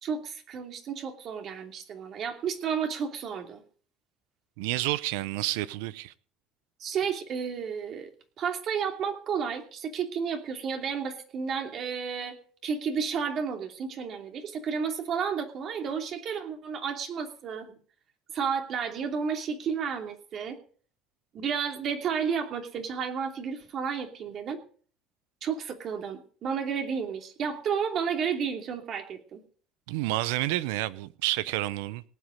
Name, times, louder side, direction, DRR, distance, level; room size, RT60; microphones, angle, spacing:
voice 1, 0.0-3.6 6.8-8.1 8.4-12.4 12.6-17.8 18.3-20.6 21.3-24.6 25.4-29.4, right 6 dB, 55° right, 2.9 m, -32 dB
voice 2, 4.6-6.1 29.9-32.0, right 17 dB, 85° right, 0.7 m, -29 dB
18.5 x 8.3 x 5.2 m
supercardioid pair, 90°, 0 cm